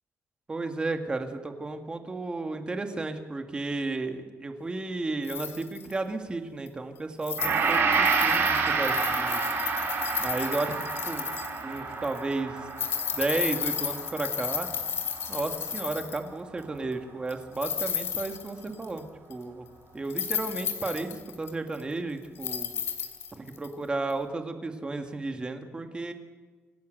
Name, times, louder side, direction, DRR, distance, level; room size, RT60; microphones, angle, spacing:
voice 1, 0.5-9.4 10.2-11.3 11.6-12.7 13.1-14.7 15.3-19.0 19.3-19.7 19.9-22.7 23.3-26.1, right 3 dB, 20° right, 6 dB, 2.0 m, -33 dB
sound 1, 5.2-5.9 6.7-6.8 7.2-11.8 12.0-12.2 12.7-16.3 17.3-19.0 19.3-19.4 20.0-21.9 22.4-23.7 24.1-24.2, left 7 dB, 55° left, 3.0 m, -33 dB
Gong, 7.4-15.8 16.1-16.3, right 4 dB, 50° right, 4.2 m, -29 dB
26.0 x 17.5 x 6.7 m, 1.3 s
cardioid pair, 145°, 5 cm